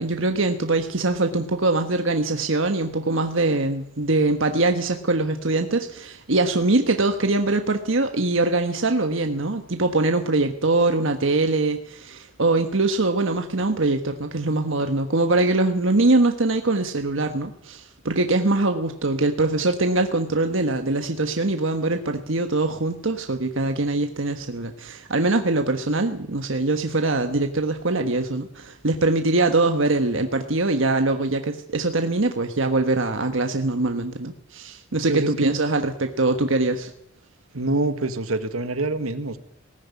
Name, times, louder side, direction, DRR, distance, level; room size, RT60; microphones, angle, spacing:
voice 1, 0.0-36.9, right 2 dB, 65° right, 6 dB, 1.4 m, -23 dB
voice 2, 35.1-35.5 37.5-39.4, right 2 dB, 85° right, 10 dB, 1.8 m, -25 dB
19.0 x 14.0 x 9.7 m, 0.71 s
head